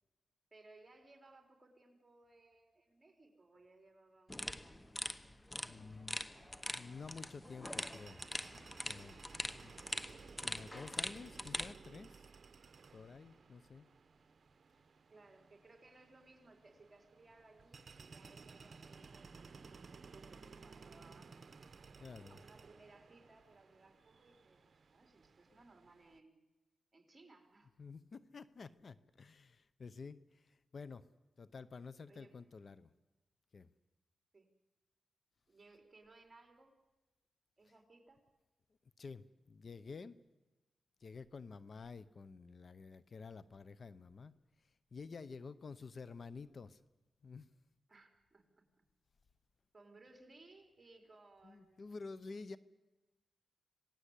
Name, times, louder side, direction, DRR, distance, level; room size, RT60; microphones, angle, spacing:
voice 1, 0.5-5.0 15.1-21.4 22.0-24.6 24.9-26.4 26.9-27.7 32.1-32.3 34.3-34.5 35.5-36.8 37.6-38.2 47.9-48.4 49.7-51.9, right 2 dB, 25° right, 4 dB, 4.6 m, -63 dB
sound 1, 4.3-11.7, left 1 dB, 15° left, 1.1 m, -43 dB
voice 2, 5.6-8.2 8.9-9.2 9.6-9.7 10.4-12.2 12.9-13.9 22.0-22.4 27.8-31.0 31.4-32.9 33.5-33.7 39.0-40.2 41.0-44.3 44.9-46.8 47.2-47.5 51.4-52.6, left 4 dB, 50° left, 15 dB, 0.8 m, -50 dB
sound 2, 6.3-26.2, right 5 dB, 55° right, 1.1 m, -58 dB
26.5 x 18.5 x 8.4 m, 1.1 s
cardioid pair, 85°, 0 cm